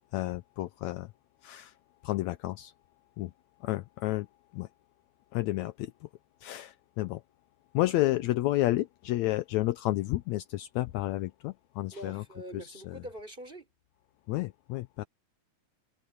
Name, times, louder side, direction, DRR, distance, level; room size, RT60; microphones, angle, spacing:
voice 1, 0.1-1.1 1.4-1.7 2.0-2.7 3.2-3.3 3.6-4.3 4.5-4.7 5.3-6.1 6.4-7.2 7.7-12.2 12.5-13.0 14.3-15.0, left 17 dB, 75° left, 1.8 m, -31 dB
voice 2, 11.9-13.7, equal, 15° right, 4.8 m, -44 dB
omnidirectional pair, 3.4 m